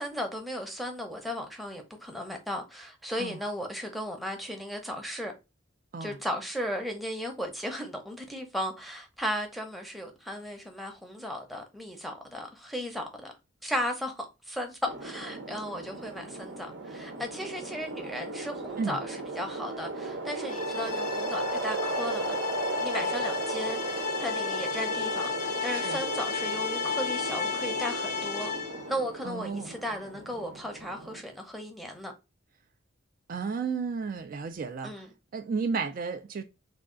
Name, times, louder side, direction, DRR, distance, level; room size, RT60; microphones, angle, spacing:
voice 1, 0.0-5.3 6.0-13.3 13.6-22.4 22.8-28.5 28.9-32.1 34.8-35.1, equal, ahead, 0.6 m, -36 dB
sound 1, 14.9-31.2, right 3 dB, 75° right, 0.8 m, -36 dB
sound 2, 20.5-28.9, left 7 dB, 40° left, 0.4 m, -33 dB
voice 2, 25.7-26.0 29.2-29.7 33.3-35.1 35.3-36.4, right 5 dB, 45° right, 0.3 m, -33 dB
3.5 x 2.3 x 3.7 m
head